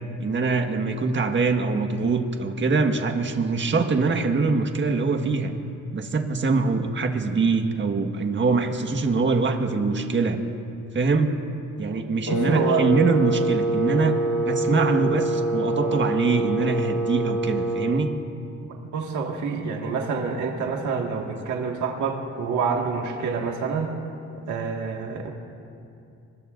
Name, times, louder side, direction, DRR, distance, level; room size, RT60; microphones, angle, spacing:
voice 1, 0.2-5.5 5.9-10.4 10.9-11.4 11.8-18.2, right 4 dB, 40° right, 5 dB, 1.5 m, -23 dB
Wind instrument woodwind instrument, 12.3-18.0, right 1 dB, 85° left, 1.9 m, -25 dB
voice 2, 12.3-12.9 18.9-23.9 24.5-25.3, right 5 dB, 75° right, 0 dB, 1.8 m, -27 dB
25.5 x 22.0 x 2.5 m, 2.6 s
cardioid pair, 90°, 30 cm